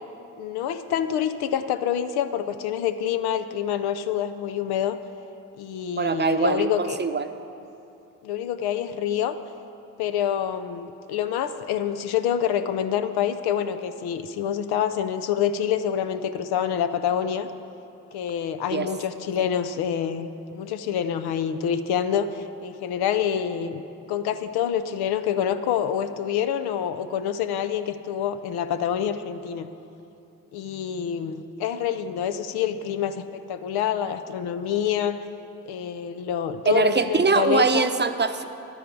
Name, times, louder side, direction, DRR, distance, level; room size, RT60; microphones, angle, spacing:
voice 1, 0.4-5.0 5.6-7.0 8.2-9.3 10.0-17.5 18.1-23.8 24.1-29.7 30.5-35.2 35.7-37.9, left 9 dB, 85° left, 10 dB, 0.5 m, -27 dB
voice 2, 6.0-7.3 18.7-18.9 36.6-38.4, right 4 dB, 30° right, 9 dB, 0.7 m, -22 dB
11.5 x 10.0 x 4.6 m, 2.8 s
supercardioid pair, 40°, 37 cm